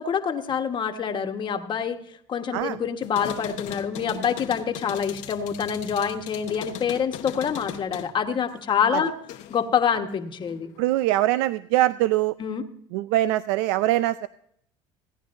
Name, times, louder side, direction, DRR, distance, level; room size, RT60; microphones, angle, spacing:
voice 1, 0.0-2.0 2.3-9.1 9.5-10.7 12.4-12.6, left 7 dB, 35° left, 5 dB, 1.3 m, -26 dB
pinball-backbox scoring mechanism in action, 3.0-9.7 10.1-10.9, left 12 dB, 65° left, 1.0 m, -39 dB
voice 2, 10.8-12.3 12.9-14.3, right 15 dB, 85° right, 15 dB, 0.4 m, -23 dB
17.0 x 10.0 x 2.6 m, 0.68 s
cardioid pair, 115°, 14 cm